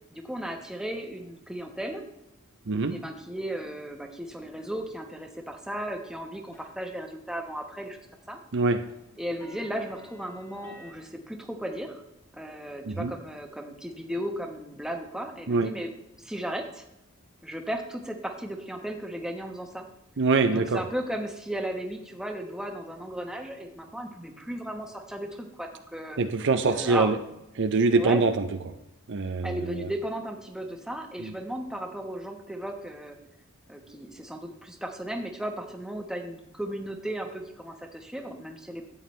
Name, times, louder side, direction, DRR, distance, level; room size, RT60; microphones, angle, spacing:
voice 1, 0.1-2.0 2.9-8.0 8.3-8.4 9.2-12.0 12.3-15.9 16.2-16.8 17.4-19.8 20.5-26.2 26.7-27.1 27.9-28.2 29.4-33.2 33.7-38.9, right 1 dB, 5° right, 3 dB, 1.1 m, -35 dB
voice 2, 2.7-3.0 8.5-8.9 12.9-13.1 15.5-15.7 20.2-20.8 26.2-27.2 27.6-28.7 29.1-29.9 31.2-31.3, right 3 dB, 55° right, 8 dB, 0.6 m, -24 dB
sound 1, 6.0-7.0 7.3-7.6 7.9-10.9, left 1 dB, 15° left, 1.9 m, -51 dB
13.0 x 8.6 x 3.2 m, 0.89 s
head